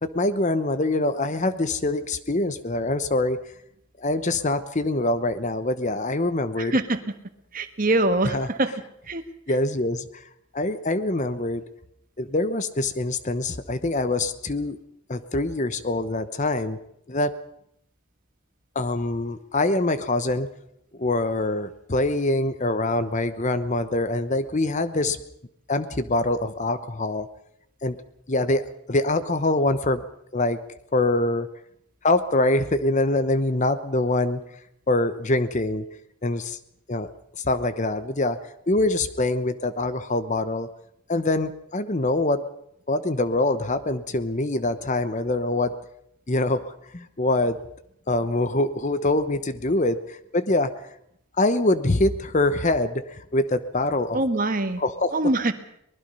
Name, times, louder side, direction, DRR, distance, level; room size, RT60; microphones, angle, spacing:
voice 1, 0.0-3.4 4.0-6.7 8.3-8.5 9.5-10.3 10.5-11.6 12.2-14.8 15.1-16.8 17.1-17.3 18.7-20.5 20.9-25.2 25.7-27.3 27.8-28.0 28.3-30.0 30.3-30.6 30.9-31.5 32.0-34.4 34.9-35.8 36.2-36.6 36.9-38.4 38.7-40.7 41.1-42.4 42.9-45.7 46.3-47.6 48.1-50.9 51.4-54.2 54.8-55.1, left 2 dB, 35° left, 12 dB, 0.9 m, -24 dB
voice 2, 6.6-7.0 7.5-8.7 9.1-9.2 54.1-54.8 55.1-55.5, right 2 dB, 40° right, 9 dB, 1.4 m, -23 dB
23.5 x 20.5 x 5.5 m, 0.74 s
head